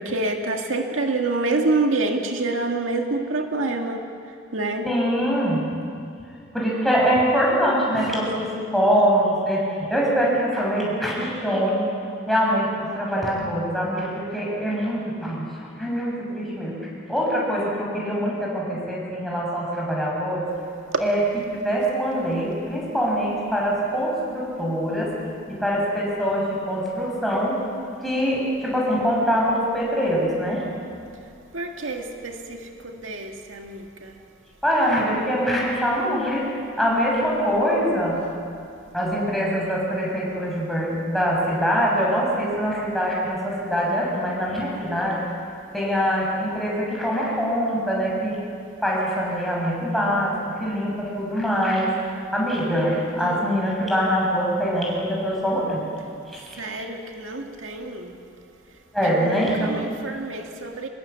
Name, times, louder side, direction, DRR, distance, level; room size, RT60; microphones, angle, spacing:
voice 1, 0.0-4.1 4.5-4.9 31.5-34.2 53.2-53.5 56.6-58.1 59.0-60.9, right 2 dB, 85° right, 3 dB, 2.1 m, -27 dB
voice 2, 4.8-5.6 6.5-11.9 12.3-16.8 17.1-20.5 21.0-21.2 21.5-25.1 25.5-27.6 28.0-30.6 34.6-36.5 36.8-38.2 38.9-45.2 45.7-48.4 48.8-51.9 52.3-55.8 58.9-59.7, equal, ahead, -5 dB, 7.1 m, -23 dB
25.5 x 20.0 x 8.5 m, 2.4 s
head